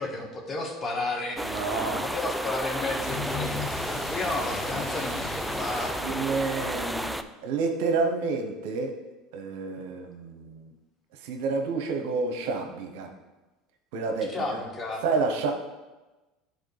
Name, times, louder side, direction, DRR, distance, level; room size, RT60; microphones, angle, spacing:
voice 1, 0.0-1.5 1.8-6.7 14.3-15.0, left 2 dB, 30° left, 1 dB, 1.5 m, -33 dB
sound 1, 1.4-7.2, equal, ahead, 0.4 m, -32 dB
voice 2, 1.4-2.2 3.5-3.6 6.0-7.2 7.4-9.0 9.3-10.7 11.2-13.1 13.9-14.6 15.0-15.5, right 4 dB, 75° right, 4 dB, 0.9 m, -29 dB
sound 2, 3.0-6.1, left 4 dB, 60° left, 1.4 m, -37 dB
10.5 x 4.1 x 3.3 m, 1.1 s
hypercardioid pair, 90°, 0 cm